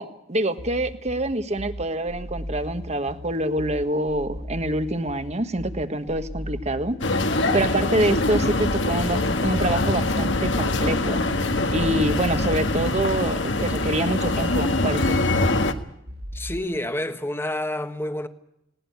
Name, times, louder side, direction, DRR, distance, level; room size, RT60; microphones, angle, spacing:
voice 1, 0.0-7.0 7.5-11.2 11.7-15.2, right 1 dB, 35° right, 1.5 m, -26 dB
sound 1, 0.6-16.6, equal, 55° right, 2.4 m, -37 dB
sound 2, 7.0-15.7, left 2 dB, 70° left, 1.6 m, -23 dB
voice 2, 16.3-18.3, left 1 dB, 10° left, 1.4 m, -28 dB
20.0 x 18.5 x 9.4 m
head